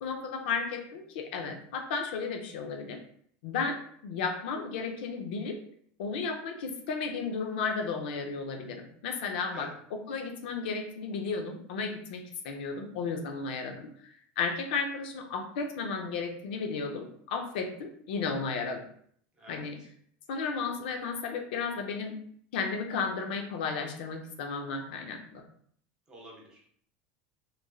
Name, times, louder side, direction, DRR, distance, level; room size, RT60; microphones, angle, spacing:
voice 1, 0.0-3.0 3.4-5.6 6.0-13.9 14.4-18.8 19.5-19.8 20.3-22.2 22.5-25.4, left 5 dB, 85° left, 4 dB, 0.5 m, -34 dB
voice 2, 26.1-26.7, right 1 dB, 15° right, -2 dB, 0.6 m, -49 dB
3.0 x 2.5 x 2.2 m, 0.63 s
supercardioid pair, 175°, 5 cm